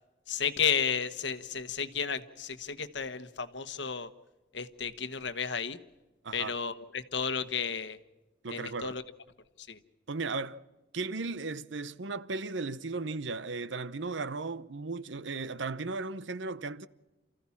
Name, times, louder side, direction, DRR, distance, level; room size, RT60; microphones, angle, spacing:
voice 1, 0.3-4.1 4.5-5.8 6.3-8.0 8.5-9.0 9.6-9.8, left 6 dB, 70° left, 1.2 m, -33 dB
voice 2, 8.4-9.0 10.1-10.6 10.9-16.9, right 3 dB, 75° right, 0.8 m, -36 dB
29.0 x 15.0 x 7.2 m
head